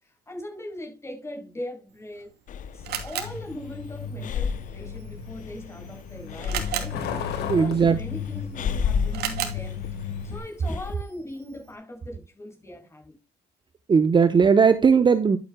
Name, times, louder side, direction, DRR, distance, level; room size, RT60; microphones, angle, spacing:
voice 1, 0.0-2.3 2.7-9.8 10.2-13.2, left 1 dB, 15° left, 6.2 m, -40 dB
Camera, 1.9-11.8, right 10 dB, 75° right, 2.8 m, -39 dB
Breathing, 2.5-10.9, left 7 dB, 50° left, 0.7 m, -33 dB
Truck, 2.8-10.4, left 6 dB, 80° left, 3.7 m, -35 dB
voice 2, 7.5-8.0 13.9-15.4, right 6 dB, 25° right, 0.8 m, -18 dB
12.0 x 8.9 x 2.2 m
cardioid pair, 110°, 17 cm